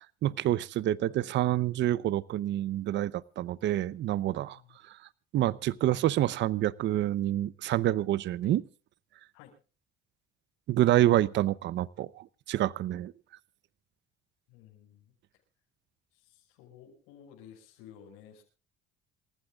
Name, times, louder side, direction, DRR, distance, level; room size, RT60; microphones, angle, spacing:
voice 1, 0.2-4.6 5.3-8.6 10.7-13.1, right 13 dB, 60° right, 19 dB, 0.7 m, -27 dB
voice 2, 14.5-15.0 16.1-18.4, left 9 dB, 90° left, -2 dB, 6.4 m, -54 dB
27.5 x 15.5 x 2.4 m, 0.36 s
cardioid pair, 100°, 21 cm